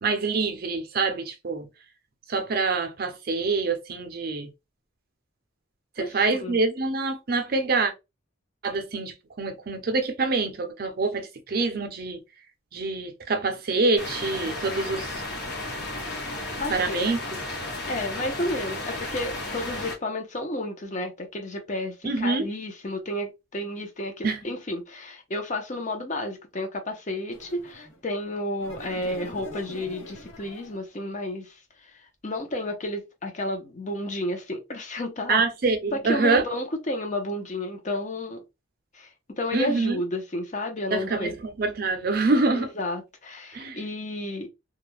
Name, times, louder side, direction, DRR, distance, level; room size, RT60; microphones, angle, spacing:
voice 1, 0.0-1.7 2.3-4.5 6.0-7.9 8.6-12.2 12.7-15.2 16.7-17.2 22.0-22.5 24.2-24.4 35.3-36.4 39.5-40.0 40.9-42.7 43.5-43.8, right 3 dB, 45° right, 0.5 m, -26 dB
voice 2, 6.0-6.6 16.6-17.1 17.9-31.9 32.2-35.4 35.9-38.4 38.9-39.1 39.4-41.3 42.5-44.5, left 1 dB, 35° left, 0.6 m, -31 dB
sound 1, 14.0-20.0, left 2 dB, 50° left, 1.0 m, -33 dB
sound 2, 27.3-28.0 28.6-30.9, equal, 85° left, 1.1 m, -42 dB
2.3 x 2.1 x 3.0 m
head